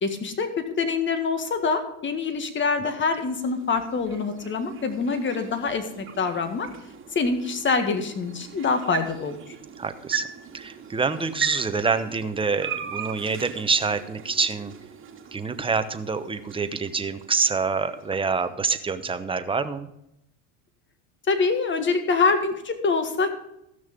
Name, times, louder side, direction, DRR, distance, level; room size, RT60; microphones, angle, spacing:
voice 1, 0.0-6.7 7.2-9.5 21.3-23.3, left 4 dB, 30° left, 8 dB, 1.7 m, -25 dB
sound 1, 2.6-18.8, right 8 dB, 30° right, 3.4 m, -39 dB
voice 2, 9.8-10.3 10.5-14.7 15.3-19.9, right 4 dB, 15° right, 9 dB, 0.9 m, -26 dB
14.5 x 6.4 x 5.2 m, 0.81 s
supercardioid pair, 100°, 38 cm